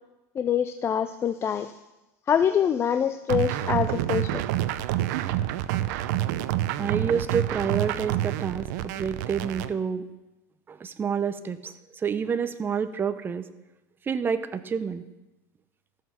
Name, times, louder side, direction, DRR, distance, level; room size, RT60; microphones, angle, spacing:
voice 1, 0.4-1.7 2.3-4.4, left 8 dB, 25° left, 11 dB, 0.4 m, -25 dB
sound 1, 3.3-9.7, right 13 dB, 70° right, 0.6 m, -28 dB
voice 2, 6.8-10.0 10.7-13.4 14.1-15.1, right 6 dB, 20° right, 11 dB, 0.7 m, -28 dB
14.0 x 6.5 x 5.8 m, 1.0 s
supercardioid pair, 115°, 10 cm